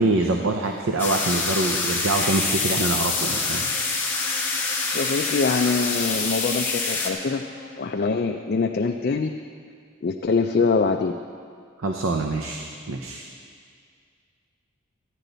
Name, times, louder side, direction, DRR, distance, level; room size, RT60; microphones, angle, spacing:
voice 1, 0.0-3.7 4.6-4.8 11.8-13.2, right 2 dB, 90° right, 3 dB, 0.7 m, -25 dB
sound 1, 1.0-7.1, left 3 dB, 10° left, 1.0 m, -26 dB
Bowed string instrument, 2.9-8.3, equal, 50° right, 3.0 m, -45 dB
voice 2, 4.8-7.4 7.8-9.3 10.0-11.2, left 4 dB, 50° left, 4 dB, 0.4 m, -24 dB
14.0 x 9.9 x 4.0 m, 2.2 s
head